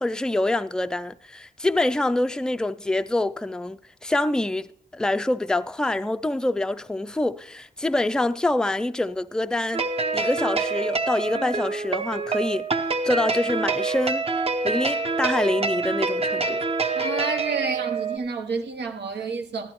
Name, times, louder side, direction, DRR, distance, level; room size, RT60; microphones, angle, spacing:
voice 1, 0.0-9.8 10.1-12.7 13.0-14.2 14.6-16.6, left 2 dB, 5° left, 0.3 m, -25 dB
sound 1, 9.7-18.2, right 4 dB, 35° right, 0.8 m, -26 dB
voice 2, 16.9-19.7, right 4 dB, 80° right, 0.8 m, -29 dB
14.5 x 12.0 x 3.0 m
wide cardioid pair, 125°, 17 cm